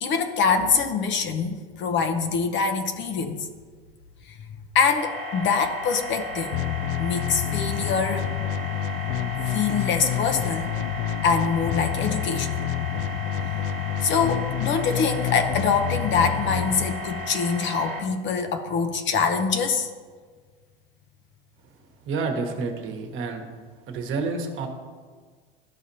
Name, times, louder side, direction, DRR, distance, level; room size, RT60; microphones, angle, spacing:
voice 1, 0.0-3.5 4.3-4.4 4.7-6.5 7.0-8.3 9.5-10.7 11.2-12.5 14.0-19.9, left 5 dB, 40° left, 7 dB, 0.8 m, -24 dB
sound 1, 5.0-18.0, left 1 dB, 20° left, 1.5 m, -35 dB
sound 2, 6.5-17.4, left 10 dB, 60° left, 0.5 m, -29 dB
voice 2, 22.1-23.4 23.9-24.7, right 4 dB, 45° right, 4 dB, 1.3 m, -29 dB
12.5 x 4.9 x 2.8 m, 1.5 s
hypercardioid pair, 90°, 30 cm